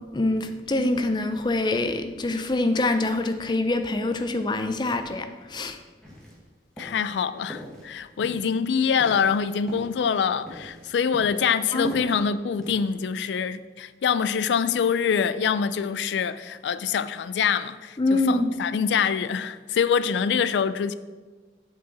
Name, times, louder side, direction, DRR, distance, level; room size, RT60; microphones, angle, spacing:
voice 1, 0.1-5.8 11.7-12.0 18.0-18.5, left 2 dB, 25° left, 0.4 m, -25 dB
sound 1, 6.0-6.5 6.8-7.1 7.5-7.9 8.2-11.5 11.7-13.0, equal, 5° left, 1.5 m, -42 dB
voice 2, 6.8-20.9, left 7 dB, 85° left, 0.3 m, -25 dB
7.6 x 6.0 x 4.1 m
head